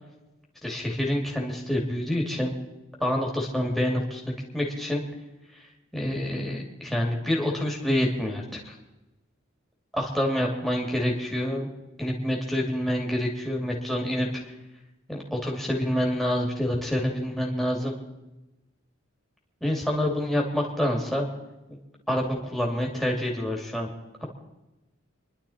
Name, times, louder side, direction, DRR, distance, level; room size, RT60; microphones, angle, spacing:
voice 1, 0.6-2.5 3.0-5.0 5.9-8.8 9.9-11.7 12.0-14.3 15.1-18.0 19.6-21.3 21.7-21.8 22.1-23.9, left 1 dB, ahead, -2 dB, 2.7 m, -27 dB
27.5 x 11.5 x 4.4 m, 1.0 s
head